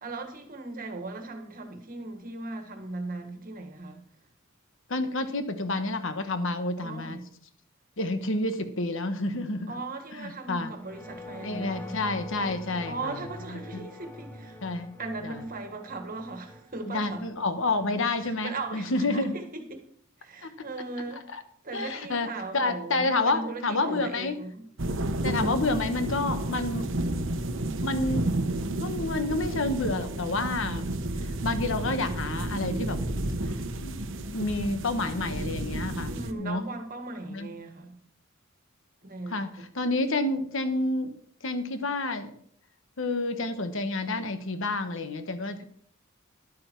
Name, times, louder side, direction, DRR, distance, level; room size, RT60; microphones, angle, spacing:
voice 1, 0.0-4.0 6.8-7.3 9.7-12.0 12.9-14.6 15.0-17.3 18.2-19.8 20.2-21.4 21.6-24.7 36.1-38.0 39.0-39.7, right 3 dB, 40° right, 1.6 m, -38 dB
voice 2, 4.9-7.2 8.0-9.7 10.2-10.7 11.4-13.0 14.6-15.0 16.9-19.3 20.4-20.5 21.3-21.4 21.7-22.3 22.5-24.3 25.2-26.9 27.8-28.3 28.8-30.9 31.4-33.0 33.7-34.0 34.3-36.6 37.3-37.5 39.3-41.2 41.4-42.3 43.0-45.6, left 2 dB, 65° left, 1.2 m, -29 dB
sound 1, 10.8-19.4, left 1 dB, 10° left, 0.8 m, -45 dB
sound 2, 24.8-36.3, right 1 dB, 60° right, 0.9 m, -31 dB
11.5 x 8.7 x 4.6 m
head